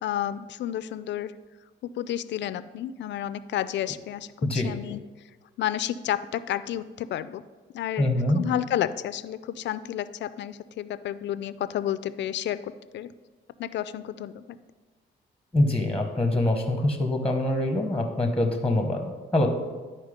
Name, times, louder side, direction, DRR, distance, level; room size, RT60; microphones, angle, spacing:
voice 1, 0.0-1.3 2.0-5.0 5.6-7.4 7.7-8.1 8.4-13.1 13.6-14.6, left 11 dB, 65° left, 14 dB, 0.4 m, -31 dB
voice 2, 4.4-4.7 8.0-8.4 15.5-19.5, left 1 dB, 5° left, 4 dB, 1.0 m, -24 dB
10.5 x 4.5 x 5.1 m, 1.3 s
cardioid pair, 90°, 20 cm